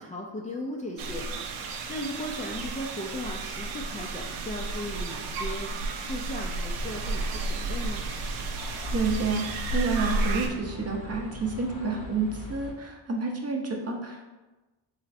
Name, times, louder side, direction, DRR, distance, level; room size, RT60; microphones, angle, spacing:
voice 1, 0.0-1.3 1.6-8.1, left 1 dB, 20° left, -3 dB, 0.3 m, -37 dB
sound 1, 1.0-10.5, right 3 dB, 90° right, 0.6 m, -32 dB
sound 2, 6.7-12.7, equal, 45° left, 0.8 m, -40 dB
voice 2, 8.9-14.3, right 3 dB, 30° right, 1 dB, 0.6 m, -29 dB
4.1 x 3.0 x 2.6 m, 1.1 s
cardioid pair, 70°, 48 cm